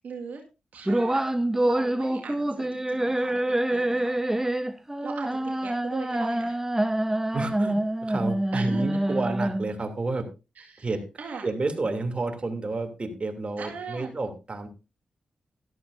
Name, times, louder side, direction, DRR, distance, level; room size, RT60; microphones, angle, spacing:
voice 1, 0.0-0.4 0.7-1.2 1.6-3.4 3.7-4.1 5.0-6.6 8.5-8.8 10.6-10.9 11.2-11.5 13.6-14.1, right 5 dB, 75° right, 1 dB, 1.9 m, -39 dB
sound 1, 0.9-9.8, right 1 dB, 15° right, 1.0 m, -26 dB
voice 2, 7.3-10.3 10.8-11.0 11.4-14.7, right 3 dB, 40° right, 5 dB, 2.9 m, -30 dB
13.5 x 12.0 x 2.7 m, 0.28 s
cardioid pair, 50°, 3 cm